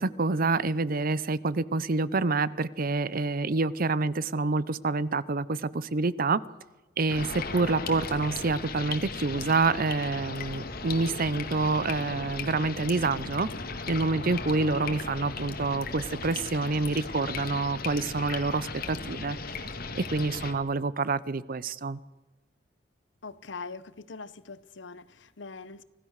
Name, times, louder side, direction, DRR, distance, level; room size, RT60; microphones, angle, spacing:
voice 1, 0.0-6.4 7.0-13.5 13.9-19.4 19.9-22.0, right 3 dB, 50° right, 0.7 m, -27 dB
sound 1, 7.1-20.5, left 4 dB, 55° left, 1.9 m, -37 dB
voice 2, 23.2-25.8, left 4 dB, 70° left, 1.0 m, -42 dB
25.5 x 16.0 x 6.6 m
head